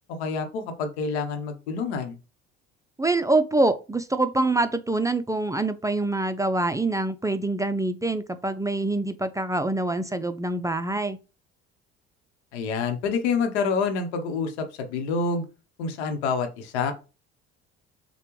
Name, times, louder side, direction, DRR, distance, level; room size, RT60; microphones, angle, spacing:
voice 1, 0.1-2.2 12.5-15.4 15.8-16.9, left 5 dB, 80° left, 0.9 m, -27 dB
voice 2, 3.0-11.2, right 2 dB, 10° right, 0.5 m, -25 dB
6.6 x 2.3 x 3.0 m
hypercardioid pair, 60°, 33 cm